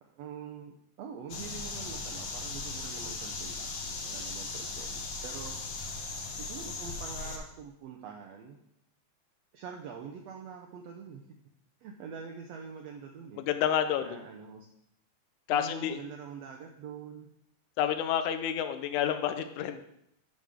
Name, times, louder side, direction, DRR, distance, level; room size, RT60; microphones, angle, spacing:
voice 1, 0.0-5.6 6.3-8.6 9.5-11.2 11.8-13.4 14.0-14.7 15.5-17.3, right 6 dB, 75° right, 2 dB, 1.7 m, -45 dB
sound 1, 1.3-7.4, left 3 dB, 65° left, 1.2 m, -38 dB
voice 2, 13.4-14.2 15.5-16.0 17.8-19.8, left 9 dB, 80° left, 9 dB, 2.1 m, -29 dB
11.5 x 5.3 x 3.6 m, 0.76 s
omnidirectional pair, 3.5 m